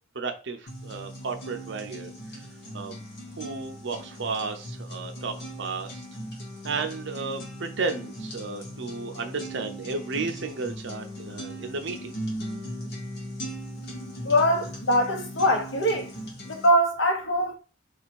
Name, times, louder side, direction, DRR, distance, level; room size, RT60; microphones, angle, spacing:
voice 1, 0.1-2.4 2.7-3.0 3.4-6.0 6.6-12.2, right 4 dB, 65° right, 0.7 m, -33 dB
sound 1, 0.7-16.7, equal, 55° left, 1.2 m, -39 dB
voice 2, 14.2-16.1 16.4-17.6, equal, 75° left, 1.1 m, -23 dB
3.0 x 2.8 x 4.3 m
head